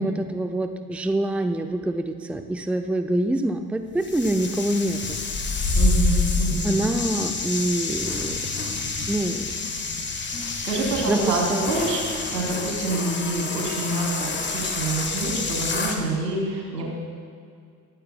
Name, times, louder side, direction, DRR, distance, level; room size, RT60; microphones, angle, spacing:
voice 1, 0.0-5.2 6.6-8.4 9.1-9.5 11.1-11.8, right 1 dB, 5° right, 7 dB, 0.6 m, -25 dB
sound 1, 4.0-16.0, left 3 dB, 20° left, 1.6 m, -27 dB
voice 2, 5.7-6.8 10.4-16.9, right 2 dB, 80° right, -2 dB, 3.2 m, -27 dB
23.5 x 15.5 x 2.2 m, 2.2 s
figure-of-eight pair, 65°, 48 cm